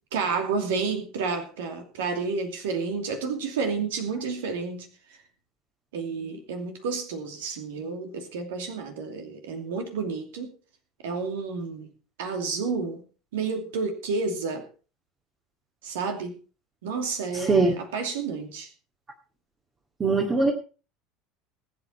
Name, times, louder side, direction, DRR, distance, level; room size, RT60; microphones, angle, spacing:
voice 1, 0.1-4.9 5.9-10.5 11.0-11.9 12.2-13.0 13.3-14.6 15.8-16.4 16.8-18.7, right 4 dB, 65° right, 5 dB, 2.6 m, -30 dB
voice 2, 17.3-17.8 20.0-20.5, right 3 dB, 20° right, 0 dB, 2.2 m, -21 dB
20.0 x 8.3 x 4.4 m, 0.36 s
figure-of-eight pair, 70°, 0 cm